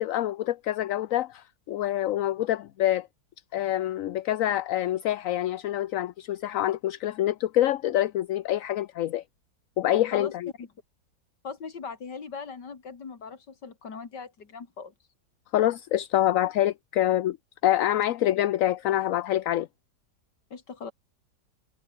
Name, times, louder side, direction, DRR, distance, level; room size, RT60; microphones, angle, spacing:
voice 1, 0.0-3.1 3.5-9.2 9.8-10.5 15.5-17.4 17.6-19.7, left 13 dB, 65° left, 0.9 m, -26 dB
voice 2, 11.4-14.9 20.5-20.9, left 5 dB, 80° left, 3.1 m, -39 dB
omnidirectional pair, 1.8 m